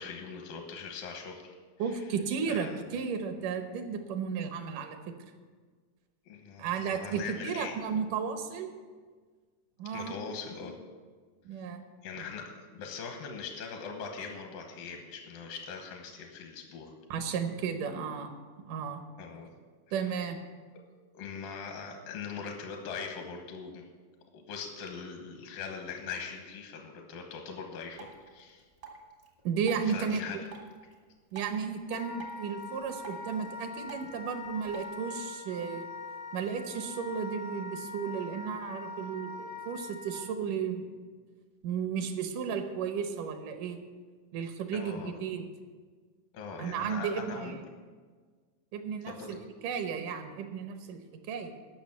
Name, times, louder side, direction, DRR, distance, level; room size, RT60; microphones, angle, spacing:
voice 1, 0.0-1.5 1.9-2.0 2.5-2.8 6.3-7.7 9.9-10.8 12.0-16.9 19.2-19.5 21.1-23.8 24.3-28.6 29.9-30.4 44.7-45.2 46.3-47.5 49.0-49.4, left 5 dB, 85° left, 3 dB, 2.8 m, -41 dB
voice 2, 1.8-5.1 6.6-8.7 9.8-10.2 11.4-11.8 17.1-18.3 18.6-19.0 19.9-20.4 29.4-30.4 31.3-35.9 36.3-40.9 41.6-43.8 44.3-45.5 46.6-47.6 48.7-49.4 49.6-51.0 51.3-51.5, right 6 dB, 75° right, 7 dB, 2.4 m, -34 dB
Drip, 27.9-34.9, right 5 dB, 40° right, 0.6 m, -52 dB
Wind instrument woodwind instrument, 31.9-40.2, left 3 dB, 70° left, 1.0 m, -43 dB
13.5 x 6.1 x 7.3 m, 1.5 s
omnidirectional pair, 3.9 m